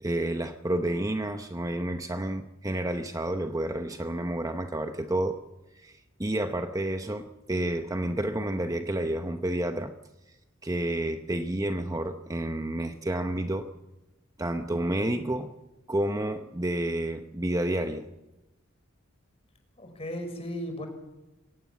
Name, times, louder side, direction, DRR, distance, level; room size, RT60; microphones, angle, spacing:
voice 1, 0.0-5.4 5.7-9.9 10.6-13.7 14.4-15.5 15.9-18.1, right 1 dB, 15° right, 7 dB, 0.8 m, -30 dB
voice 2, 19.8-20.9, equal, 30° left, 5 dB, 5.3 m, -35 dB
23.0 x 18.0 x 7.3 m, 1.0 s
head